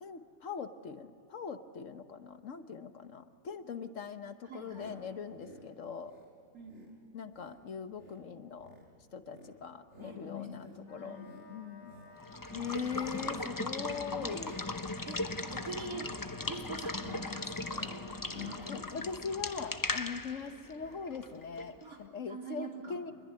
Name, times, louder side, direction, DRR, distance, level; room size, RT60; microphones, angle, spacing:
voice 1, 0.0-6.1 7.1-8.7 9.1-11.2 11.5-11.9 12.5-14.6 18.7-23.1, left 6 dB, 60° left, 9 dB, 1.4 m, -41 dB
voice 2, 4.4-5.0 6.5-6.8 10.0-11.3 14.5-14.6 15.1-16.1 16.5-18.9 21.8-23.0, right 1 dB, 80° right, 0 dB, 4.1 m, -45 dB
sound 1, 4.7-5.0 5.3-5.7 6.0-6.3 6.6-6.9 7.3-7.6 7.9-8.2 8.5-8.9 9.2-10.2 10.5-10.8 11.2-11.5 11.8-12.1 12.5-12.8 13.1-13.4 13.7-14.0 14.3-14.7 15.0-15.3 15.7-15.9 16.3-20.0 20.8-21.0 21.3-21.4 21.6-21.7, right 1 dB, 50° right, 5.7 m, -54 dB
Wind instrument woodwind instrument, 10.8-19.2, left 3 dB, 80° left, 5.1 m, -56 dB
Water / Water tap faucet / Liquid, 12.2-21.8, left 2 dB, 20° left, 0.6 m, -38 dB
26.5 x 21.5 x 9.7 m, 2.6 s
omnidirectional pair, 1.5 m